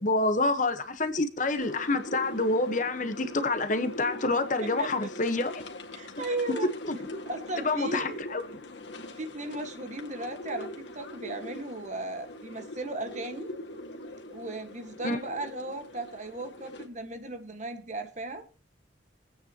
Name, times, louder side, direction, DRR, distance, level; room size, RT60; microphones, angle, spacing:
voice 1, 0.0-5.6 6.8-7.0 7.6-8.6 15.0-15.2, left 2 dB, 45° left, 1.1 m, -27 dB
sound 1, 1.6-16.9, left 1 dB, 80° left, 1.9 m, -42 dB
voice 2, 5.9-6.7 7.2-8.2 9.2-13.5 14.3-18.4, right 2 dB, 40° right, 1.6 m, -36 dB
23.5 x 8.9 x 2.9 m
head